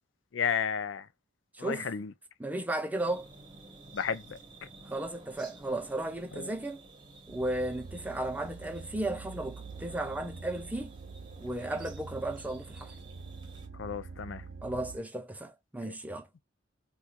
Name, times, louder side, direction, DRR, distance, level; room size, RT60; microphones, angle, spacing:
voice 1, 0.3-1.0 1.6-2.1 3.9-4.4 13.8-14.4 15.8-15.9, left 7 dB, 70° left, 0.5 m, -32 dB
voice 2, 1.5-1.9 2.4-3.3 4.9-6.8 7.3-10.9 11.4-12.9 14.6-16.3, right 1 dB, 10° right, 0.5 m, -35 dB
sound 1, 3.0-13.7, right 2 dB, 25° right, 0.9 m, -53 dB
sound 2, 7.3-15.0, right 4 dB, 60° right, 0.4 m, -46 dB
4.3 x 2.3 x 2.4 m
head